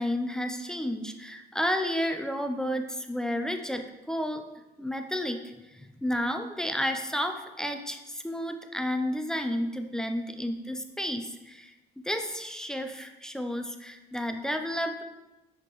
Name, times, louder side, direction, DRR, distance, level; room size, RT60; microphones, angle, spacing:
voice 1, 0.0-4.4 4.8-5.4 5.7-11.7 12.0-15.0, equal, 5° left, 6 dB, 0.5 m, -31 dB
6.9 x 5.0 x 3.1 m, 1.0 s
cardioid pair, 110°, 17 cm